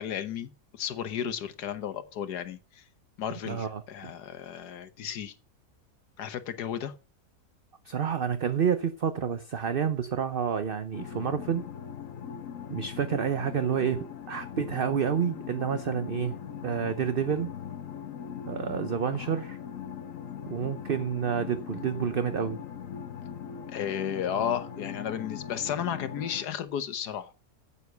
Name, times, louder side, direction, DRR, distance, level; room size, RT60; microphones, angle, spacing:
voice 1, 0.0-2.8 3.2-5.3 6.2-6.9 19.1-19.3 23.7-27.3, left 9 dB, 80° left, 1.5 m, -33 dB
voice 2, 3.5-3.8 7.8-11.7 12.7-17.5 18.5-19.6 20.5-22.6, right 7 dB, 45° right, 0.8 m, -29 dB
sound 1, 10.9-26.4, left 8 dB, 60° left, 1.2 m, -40 dB
9.5 x 8.4 x 6.6 m
omnidirectional pair, 1.7 m